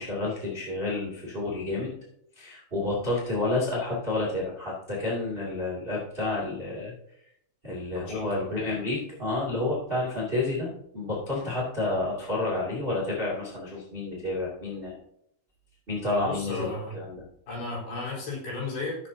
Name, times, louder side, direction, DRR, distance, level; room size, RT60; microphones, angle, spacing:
voice 1, 0.0-1.9 2.3-6.9 7.6-14.9 15.9-17.2, left 2 dB, 25° right, -5 dB, 1.2 m, -30 dB
voice 2, 7.9-8.5 16.2-16.9 17.5-19.0, left 3 dB, 55° left, -6 dB, 6.1 m, -34 dB
16.5 x 7.1 x 2.8 m, 0.75 s
omnidirectional pair, 5.6 m